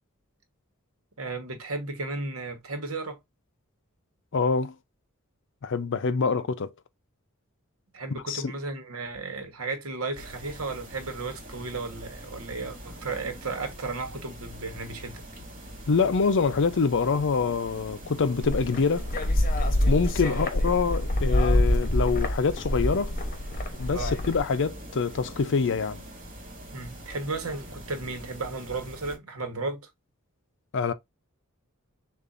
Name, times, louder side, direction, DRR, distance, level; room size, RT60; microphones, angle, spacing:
voice 1, 1.2-3.2 7.9-15.2 20.2-20.4 23.9-24.2 26.7-29.9, right 3 dB, 70° right, 1.3 m, -34 dB
voice 2, 4.3-4.8 5.6-6.7 8.1-8.5 15.9-19.1 19.9-23.2 23.8-26.0 30.7-30.9, left 5 dB, 60° left, 0.5 m, -25 dB
sound 1, 10.1-29.2, equal, 40° right, 2.1 m, -43 dB
sound 2, 18.4-24.4, left 1 dB, 40° left, 0.9 m, -26 dB
6.8 x 2.5 x 2.5 m
head